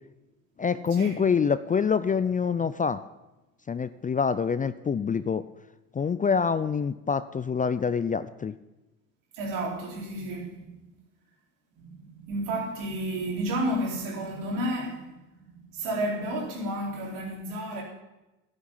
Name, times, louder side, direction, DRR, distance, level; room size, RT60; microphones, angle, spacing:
voice 1, 0.6-3.0 3.7-5.5 5.9-8.5, left 6 dB, 20° left, 0.5 m, -26 dB
voice 2, 9.3-10.9 11.8-17.8, right 1 dB, 70° right, 4.3 m, -32 dB
11.0 x 11.0 x 5.6 m
hypercardioid pair, 65°, 40 cm